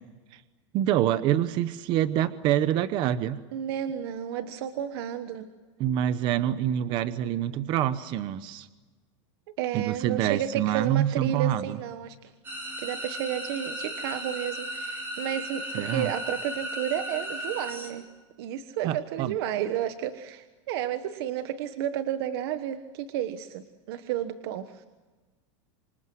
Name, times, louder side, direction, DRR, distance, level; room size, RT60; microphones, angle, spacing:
voice 1, 0.7-3.4 5.8-8.7 9.7-11.8 15.7-16.1 18.8-19.4, right 11 dB, 30° right, 13 dB, 0.9 m, -26 dB
voice 2, 3.5-5.5 9.6-12.2 12.8-18.1 18.4-24.8, right 10 dB, 50° right, 9 dB, 1.3 m, -32 dB
sound 1, 12.4-17.9, equal, 15° right, 4.9 m, -36 dB
27.0 x 26.0 x 7.8 m, 1.3 s
supercardioid pair, 175°, 16 cm